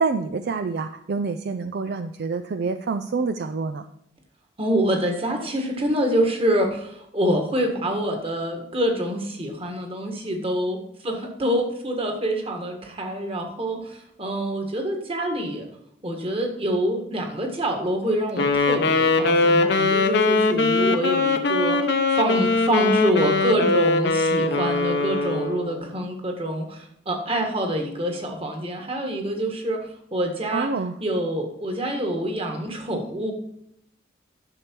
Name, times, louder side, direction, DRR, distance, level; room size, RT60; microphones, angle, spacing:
voice 1, 0.0-3.8 30.5-30.9, right 4 dB, 55° right, 9 dB, 0.4 m, -27 dB
voice 2, 4.6-15.7 16.0-29.8 30.1-30.7 31.0-33.3, right 1 dB, 30° right, 3 dB, 1.6 m, -26 dB
Wind instrument woodwind instrument, 18.4-25.8, left 3 dB, 60° left, 0.9 m, -21 dB
11.0 x 6.8 x 4.5 m, 0.76 s
head